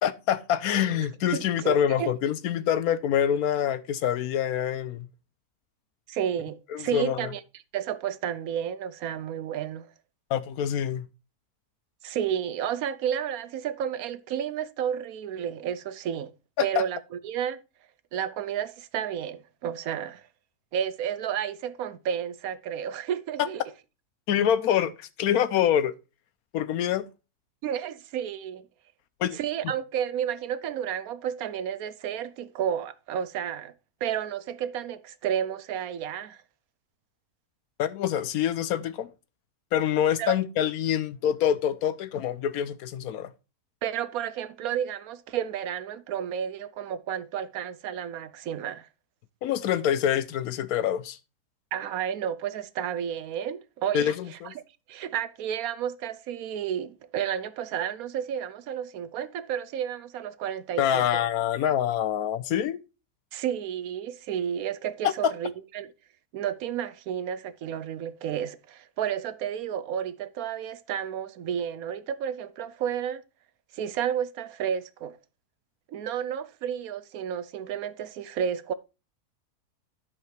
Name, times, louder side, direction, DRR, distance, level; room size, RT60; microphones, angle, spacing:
voice 1, 0.0-5.1 6.7-7.3 10.3-11.0 16.6-16.8 23.4-23.5 24.3-25.9 26.5-27.0 29.2-29.4 37.8-39.1 39.7-43.3 49.4-51.2 53.9-54.5 60.8-62.8, left 10 dB, 70° left, 1.0 m, -26 dB
voice 2, 1.3-2.1 6.1-7.4 7.7-9.9 12.0-16.3 16.6-17.6 18.1-20.3 20.7-23.6 27.6-28.7 29.3-33.7 34.0-36.4 40.2-40.4 43.8-48.9 51.7-54.6 54.9-61.2 63.3-65.9 66.3-73.2 73.7-75.2 75.9-78.7, right 9 dB, 70° right, 1.0 m, -31 dB
10.5 x 5.7 x 3.2 m
omnidirectional pair, 1.7 m